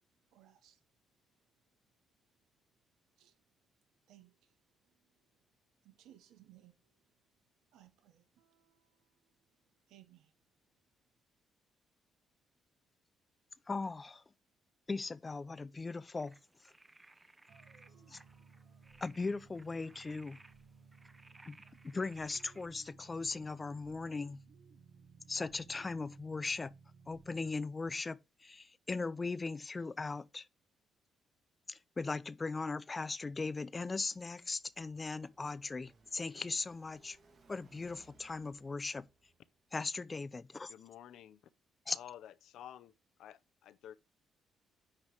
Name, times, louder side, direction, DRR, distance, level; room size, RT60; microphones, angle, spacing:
voice 1, 0.3-0.8 3.2-3.4 4.1-4.6 4.8-5.5 5.8-7.1 7.7-10.3, right 13 dB, 85° right, 1.1 m, -64 dB
voice 2, 13.7-14.2 14.9-16.4 18.1-18.2 19.0-20.4 21.5-21.6 21.8-24.4 25.3-26.7 27.1-30.5 31.7-37.2 37.5-39.1 39.7-40.7 41.9-42.0, left 3 dB, 25° left, 0.4 m, -38 dB
sound 1, 16.1-22.7, right 2 dB, 15° right, 0.6 m, -61 dB
sound 2, 17.5-27.5, right 5 dB, 60° right, 1.1 m, -60 dB
Car passing by, 34.1-39.6, right 4 dB, 45° right, 2.0 m, -67 dB
voice 3, 40.7-41.4 41.9-42.9 43.2-43.9, left 11 dB, 80° left, 0.5 m, -51 dB
9.6 x 3.3 x 4.5 m
cardioid pair, 90°, 0 cm